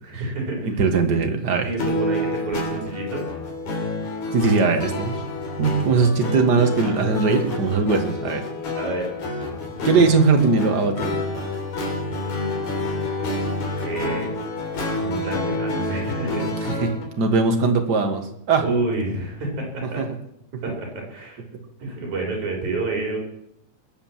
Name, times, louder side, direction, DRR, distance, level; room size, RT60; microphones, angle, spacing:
voice 1, 0.0-0.8 1.6-3.2 8.8-9.1 9.7-9.9 12.1-12.6 13.8-14.3 15.0-16.5 18.6-20.0 20.6-21.4 21.8-23.2, right 2 dB, 75° right, 0 dB, 5.7 m, -29 dB
voice 2, 0.6-1.7 4.3-5.1 5.6-8.4 9.8-11.1 16.8-18.6 20.0-20.1, right 4 dB, 40° right, 5 dB, 1.7 m, -20 dB
sound 1, 1.8-17.0, left 2 dB, 75° left, 4.6 m, -28 dB
21.0 x 8.4 x 7.3 m, 0.79 s
omnidirectional pair, 3.4 m